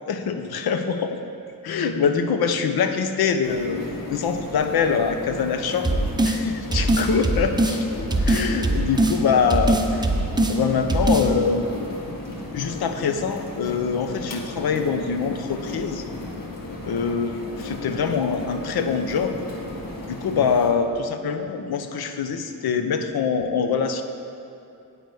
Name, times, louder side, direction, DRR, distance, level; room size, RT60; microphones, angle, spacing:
voice 1, 0.1-1.2 1.6-3.8 4.1-5.9 6.2-7.9 8.2-10.1 10.5-11.7 12.5-16.1 16.8-19.4 20.1-24.0, left 6 dB, 80° left, 7 dB, 0.7 m, -24 dB
sound 1, 3.4-20.7, left 2 dB, 65° left, 1.5 m, -35 dB
sound 2, 5.8-6.4 6.7-7.8 8.1-9.2 9.5-10.6 10.9-11.3, right 1 dB, 10° right, 0.5 m, -21 dB
9.1 x 8.2 x 4.8 m, 2.6 s
wide cardioid pair, 150°, 36 cm